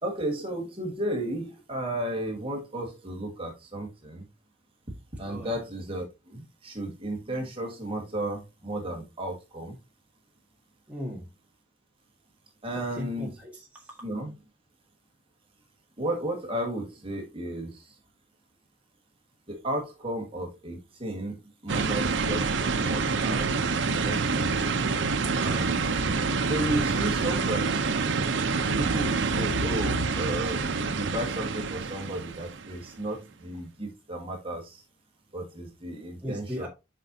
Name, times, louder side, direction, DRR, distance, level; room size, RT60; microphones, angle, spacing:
voice 1, 0.0-4.3 5.1-9.8 12.6-13.3 14.0-14.3 16.0-18.0 19.5-23.6 23.8-24.6 25.4-26.0 26.4-27.9 28.8-34.8 35.3-36.7, right 1 dB, 30° right, 1.8 m, -34 dB
voice 2, 5.2-5.6 10.9-11.3 12.7-13.9 36.2-36.7, equal, 10° right, 1.7 m, -37 dB
sound 1, 21.7-32.9, right 4 dB, 85° right, 0.7 m, -27 dB
7.6 x 5.2 x 2.8 m
head